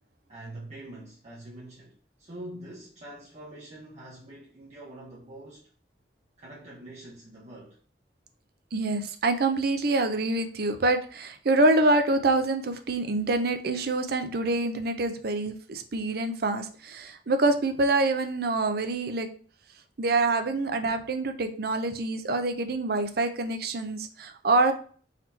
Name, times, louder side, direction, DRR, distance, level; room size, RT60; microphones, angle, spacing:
voice 1, 0.3-5.7 6.4-7.8, right 1 dB, 40° right, 1.0 m, -44 dB
voice 2, 8.7-19.3 20.0-24.7, right 2 dB, 60° right, 0.6 m, -26 dB
4.1 x 3.0 x 4.1 m
head